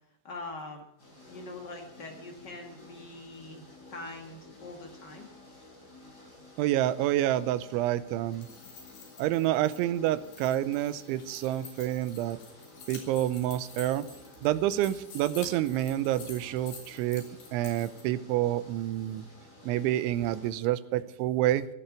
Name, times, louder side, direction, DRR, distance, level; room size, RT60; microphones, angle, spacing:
voice 1, 0.2-0.8 1.3-3.6 3.9-5.3, left 2 dB, 80° left, 2 dB, 0.9 m, -43 dB
sound 1, 1.0-20.5, left 2 dB, 20° left, 5.9 m, -53 dB
voice 2, 6.6-8.5 9.2-12.4 12.9-14.1 14.4-17.3 17.5-19.3 19.6-21.7, right 13 dB, 85° right, 15 dB, 3.2 m, -28 dB
sound 2, 8.2-18.0, left 5 dB, 60° left, 5.0 m, -49 dB
17.0 x 11.5 x 7.2 m, 0.75 s
omnidirectional pair, 5.4 m